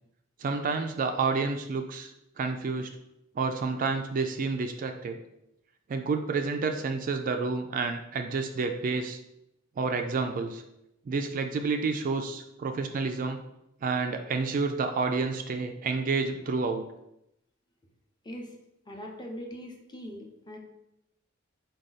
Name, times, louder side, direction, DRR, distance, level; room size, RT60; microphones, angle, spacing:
voice 1, 0.4-2.1 2.4-2.9 3.4-5.2 5.9-9.2 9.8-10.6 11.1-13.4 13.8-16.8, right 4 dB, 40° right, 6 dB, 0.3 m, -29 dB
voice 2, 18.9-20.6, equal, 20° left, 1 dB, 0.6 m, -41 dB
4.8 x 2.3 x 4.0 m, 0.85 s
head